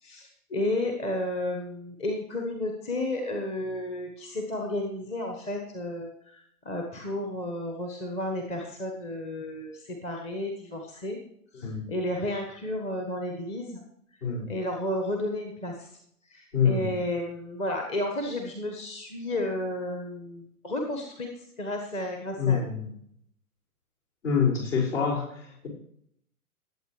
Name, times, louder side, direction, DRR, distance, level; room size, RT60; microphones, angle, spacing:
voice 1, 0.0-11.2 11.5-13.8 14.5-15.9 16.3-22.6, left 1 dB, 15° left, 2 dB, 1.2 m, -32 dB
voice 2, 11.6-12.0 14.2-14.6 16.5-17.0 22.4-22.9 24.2-25.7, left 6 dB, 50° left, -4 dB, 5.6 m, -26 dB
19.5 x 8.3 x 3.2 m, 0.71 s
figure-of-eight pair, 115°, 45 cm